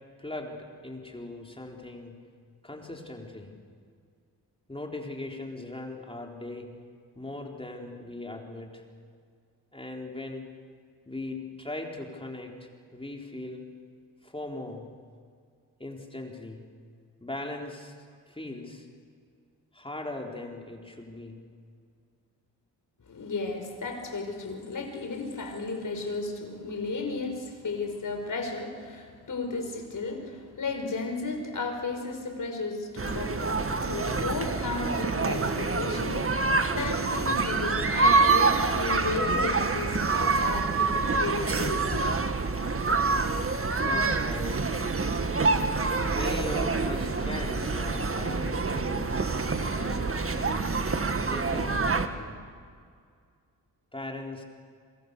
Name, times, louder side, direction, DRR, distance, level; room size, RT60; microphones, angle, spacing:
voice 1, 0.2-2.2 2.6-3.5 4.7-6.7 7.2-8.8 9.7-10.4 11.1-13.7 14.2-14.9 15.8-16.6 17.2-17.9 18.3-18.9 19.7-21.4 43.2-43.3 43.8-44.8 46.1-50.6 51.3-52.4 53.9-54.4, left 2 dB, 15° left, 1 dB, 4.1 m, -39 dB
voice 2, 23.1-42.1, left 3 dB, 50° left, 4 dB, 5.5 m, -34 dB
sound 1, 33.0-52.1, right 3 dB, 35° right, 2.0 m, -26 dB
27.0 x 24.0 x 6.9 m, 2.1 s
cardioid pair, 65°, 40 cm